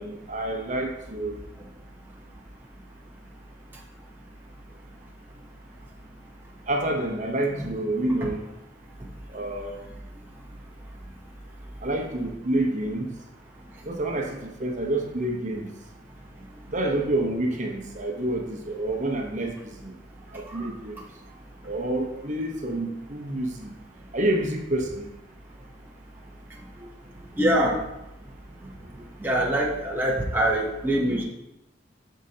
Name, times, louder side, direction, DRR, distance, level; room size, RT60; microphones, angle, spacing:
voice 1, 0.0-1.4 6.7-8.4 9.3-9.8 11.8-13.1 13.8-15.7 16.7-19.5 19.8-19.9 20.3-21.0 21.6-23.7 24.1-25.1, right 1 dB, 40° right, 1 dB, 0.9 m, -28 dB
voice 2, 27.4-27.8 29.2-31.2, right 1 dB, 10° right, -3 dB, 0.8 m, -23 dB
7.7 x 6.4 x 2.8 m, 0.90 s
head